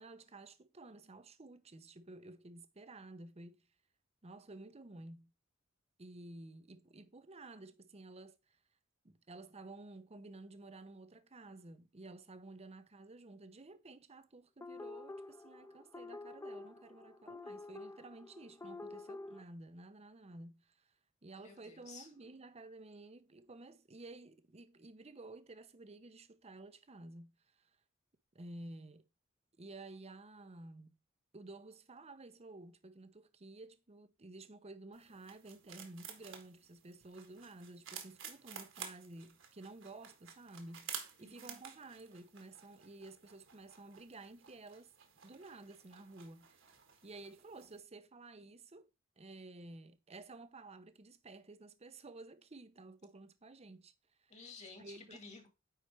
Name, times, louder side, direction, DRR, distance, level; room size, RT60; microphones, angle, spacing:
voice 1, 0.0-3.7 4.2-5.3 6.0-8.6 9.0-20.9 21.2-27.7 28.3-29.1 29.6-31.0 31.3-40.9 41.2-44.9 45.2-46.6 47.0-48.9 49.2-53.9 54.2-54.3 54.8-55.2, right 2 dB, 30° right, 0.8 m, -53 dB
sound 1, 14.6-19.4, left 2 dB, 15° left, 0.4 m, -48 dB
voice 2, 21.4-22.1 41.2-41.6 54.3-55.5, left 4 dB, 35° left, 2.1 m, -53 dB
sound 2, 34.9-47.8, right 8 dB, 65° right, 1.6 m, -52 dB
9.4 x 4.4 x 3.4 m
head